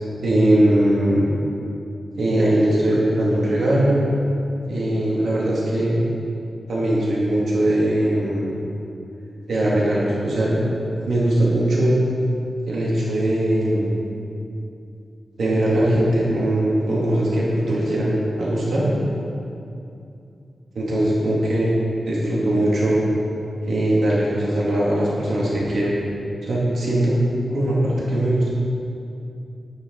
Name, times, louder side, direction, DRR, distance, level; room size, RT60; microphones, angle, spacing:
voice 1, 0.2-1.3 2.2-4.0 4.7-6.0 6.7-8.6 9.5-10.8 11.0-12.0 12.7-14.0 15.4-18.9 20.7-21.8 22.0-23.0 23.7-25.9 26.4-27.2 27.5-28.5, right 1 dB, 85° right, -6 dB, 2.7 m, -20 dB
14.0 x 11.0 x 4.1 m, 2.6 s
wide cardioid pair, 140°, 0 cm